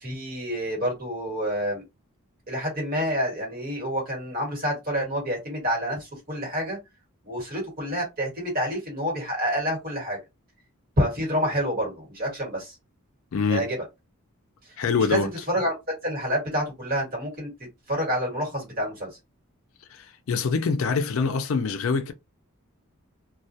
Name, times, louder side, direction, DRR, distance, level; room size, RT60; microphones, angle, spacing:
voice 1, 0.0-1.8 2.5-6.8 7.2-10.2 11.0-12.8 13.5-13.8 15.0-15.2 15.5-15.7 16.0-17.5 17.9-19.1, equal, 40° right, 1.3 m, -28 dB
voice 2, 13.3-13.7 14.8-15.3 19.9-22.1, left 5 dB, 65° left, 0.4 m, -25 dB
2.2 x 2.2 x 2.6 m
head